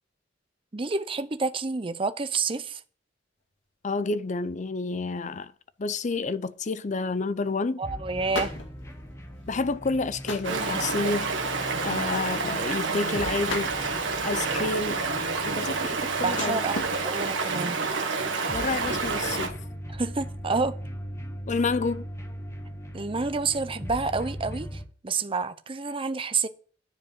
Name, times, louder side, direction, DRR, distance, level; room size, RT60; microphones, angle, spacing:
voice 1, 0.7-2.8 7.8-8.6 11.9-12.0 16.2-17.8 19.9-20.8 22.9-26.5, right 4 dB, 30° right, 0.7 m, -29 dB
sound 1, 3.8-3.9 4.2-4.6 5.1-5.2 6.5-6.9 7.2-7.3 7.6-7.8 8.2-9.5 10.0-10.7 11.1-11.5 11.8-11.9 12.0-12.9 13.5-14.2 14.8-17.6 18.1-18.5 18.7-19.8, left 2 dB, 85° left, 2.2 m, -39 dB
voice 2, 3.8-5.5 5.8-7.8 9.5-11.3 11.8-13.7 14.2-16.6 18.5-19.6 21.5-22.1, left 3 dB, 40° left, 0.5 m, -29 dB
sound 2, 7.8-24.9, equal, 15° left, 1.2 m, -40 dB
Stream, 10.4-19.5, right 4 dB, 85° right, 1.4 m, -29 dB
10.0 x 4.8 x 7.3 m
head